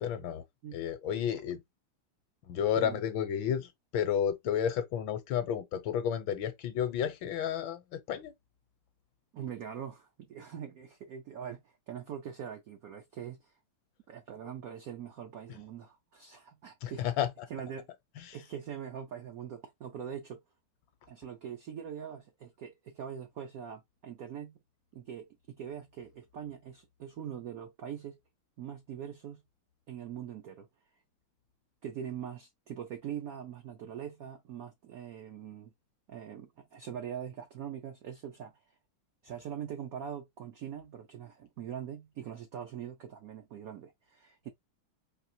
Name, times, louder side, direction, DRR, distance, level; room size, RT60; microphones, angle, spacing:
voice 1, 0.0-0.4 0.7-1.6 2.5-8.3 16.8-17.5 18.2-18.4, left 9 dB, 75° left, 1.4 m, -32 dB
voice 2, 9.3-13.5 14.1-17.0 17.5-17.9 18.3-20.4 21.1-24.6 24.9-28.2 28.6-29.4 29.9-30.7 31.8-35.7 36.1-38.5 39.2-44.5, right 8 dB, 70° right, 0.8 m, -42 dB
4.7 x 2.8 x 2.7 m
omnidirectional pair, 2.3 m